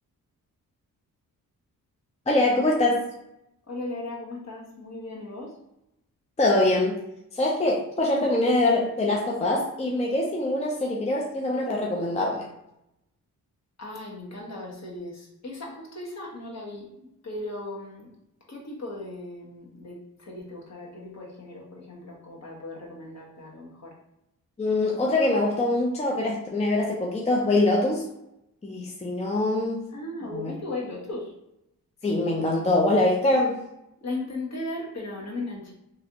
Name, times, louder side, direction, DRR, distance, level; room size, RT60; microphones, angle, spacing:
voice 1, 2.3-3.1 6.4-7.0 7.3-12.5 24.6-28.0 28.6-29.8 30.3-30.5 32.0-33.6, left 2 dB, 20° left, -1 dB, 0.6 m, -23 dB
voice 2, 3.7-5.6 13.8-18.1 18.5-23.9 29.9-31.3 34.0-35.7, left 2 dB, 50° left, -3 dB, 1.2 m, -37 dB
3.1 x 2.5 x 2.9 m, 0.84 s
cardioid pair, 60°, 36 cm